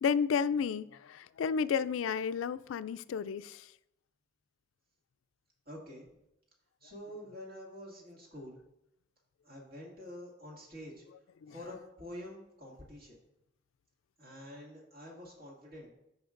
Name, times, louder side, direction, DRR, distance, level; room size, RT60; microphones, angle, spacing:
voice 1, 0.0-3.6 11.4-11.5, left 6 dB, 90° left, 0.3 m, -32 dB
voice 2, 5.7-6.1 6.8-8.6 9.4-11.1 11.5-13.2 14.2-15.9, left 1 dB, 50° right, 2.2 m, -47 dB
14.5 x 5.3 x 2.5 m
head